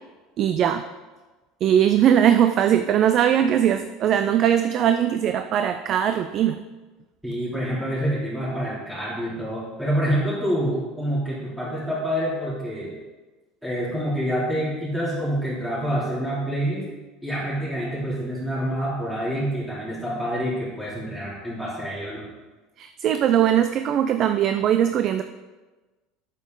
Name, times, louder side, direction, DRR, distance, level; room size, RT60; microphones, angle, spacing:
voice 1, 0.4-0.8 1.6-6.6 22.8-25.2, right 10 dB, 50° right, 9 dB, 0.4 m, -20 dB
voice 2, 7.2-12.9 13.6-16.8 17.2-22.3, equal, 5° right, -9 dB, 2.9 m, -27 dB
8.0 x 7.4 x 3.9 m, 1.2 s
supercardioid pair, 105°, 0 cm